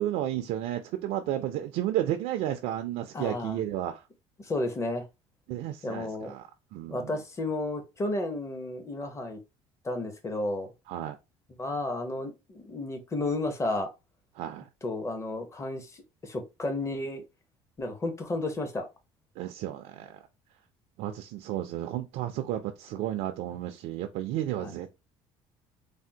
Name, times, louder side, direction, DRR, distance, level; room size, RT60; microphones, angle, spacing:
voice 1, 0.0-4.0 5.5-7.2 10.9-11.2 14.4-14.7 19.4-20.2 21.0-25.1, right 12 dB, 75° right, 0.4 m, -32 dB
voice 2, 3.1-3.6 4.4-5.1 5.8-6.3 6.9-9.4 9.8-10.7 11.6-13.9 14.8-17.2 17.8-18.9 24.6-24.7, left 2 dB, 25° left, 0.8 m, -32 dB
3.4 x 2.0 x 2.8 m
supercardioid pair, 95°, 12 cm